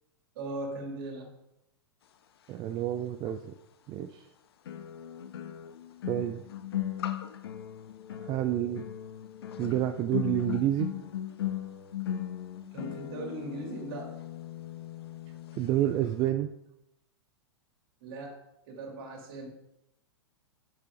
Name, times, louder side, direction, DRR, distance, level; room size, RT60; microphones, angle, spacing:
voice 1, 0.3-1.3 12.7-14.1 18.0-18.4 18.7-19.5, right 2 dB, 55° right, 1 dB, 2.4 m, -39 dB
voice 2, 2.5-3.5 3.9-4.2 6.1-6.4 8.2-8.8 9.6-10.9 15.6-16.5, right 12 dB, 30° right, 8 dB, 0.4 m, -29 dB
sound 1, 3.3-3.4 4.7-15.8 16.0-16.3, left 11 dB, 65° left, 0.6 m, -38 dB
6.3 x 6.2 x 4.9 m, 0.86 s
figure-of-eight pair, 100°, 14 cm